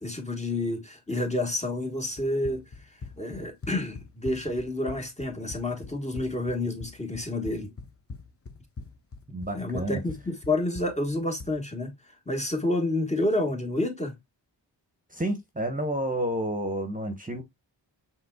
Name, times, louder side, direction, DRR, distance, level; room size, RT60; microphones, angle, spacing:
voice 1, 0.0-2.6 3.2-7.7 9.5-11.9 12.3-14.2, left 2 dB, 15° left, 1.5 m, -29 dB
Run, 2.2-11.6, left 4 dB, 30° left, 0.9 m, -43 dB
voice 2, 9.3-10.0 15.1-17.4, right 1 dB, 20° right, 1.2 m, -30 dB
5.5 x 3.7 x 2.3 m
cardioid pair, 45°, 44 cm